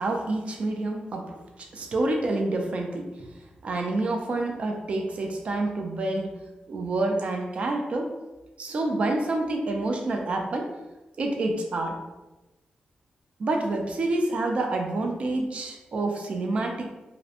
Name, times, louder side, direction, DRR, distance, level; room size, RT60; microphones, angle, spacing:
voice 1, 0.0-1.4 1.7-3.3 3.6-6.3 6.7-8.1 8.6-10.7 11.2-12.0 13.4-16.9, right 2 dB, 45° right, 2 dB, 0.3 m, -28 dB
2.4 x 2.0 x 2.7 m, 1.1 s
wide cardioid pair, 165°, 3 cm